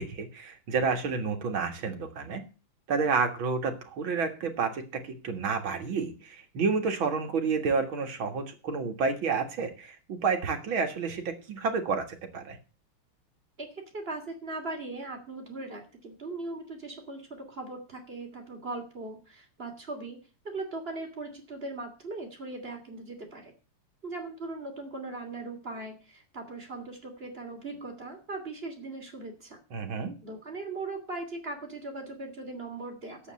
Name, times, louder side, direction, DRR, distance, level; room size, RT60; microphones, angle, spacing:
voice 1, 0.0-2.4 2.9-12.6 29.7-30.1, right 5 dB, 65° right, 5 dB, 2.5 m, -30 dB
voice 2, 13.6-20.2 20.4-23.5 24.0-29.6 30.2-33.3, right 2 dB, 25° right, 3 dB, 3.0 m, -39 dB
10.0 x 8.3 x 8.3 m, 0.35 s
omnidirectional pair, 2.4 m